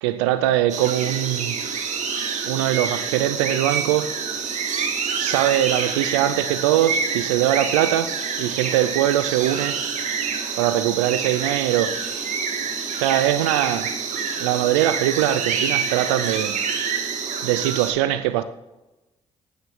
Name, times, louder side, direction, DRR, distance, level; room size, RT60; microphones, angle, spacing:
voice 1, 0.0-1.6 2.4-4.2 5.2-9.8 10.6-12.0 12.9-13.9 14.4-16.6 17.4-18.4, right 12 dB, 85° right, 0.4 m, -22 dB
sound 1, 0.7-17.9, right 6 dB, 60° right, 1.8 m, -27 dB
21.0 x 9.3 x 3.2 m
hypercardioid pair, 45°, 14 cm